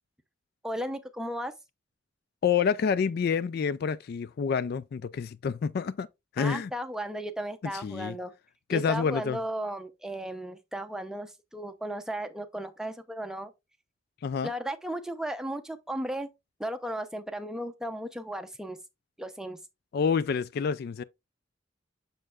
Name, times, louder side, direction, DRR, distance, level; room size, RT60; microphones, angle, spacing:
voice 1, 0.6-1.5 6.4-8.3 8.7-13.5 14.4-16.3 16.6-18.8 19.2-19.6, right 1 dB, 5° right, 0.6 m, -35 dB
voice 2, 2.4-6.1 6.3-6.7 7.6-8.2 8.7-9.4 14.2-14.5 19.9-21.0, left 6 dB, 55° left, 0.3 m, -28 dB
6.6 x 6.5 x 2.4 m
head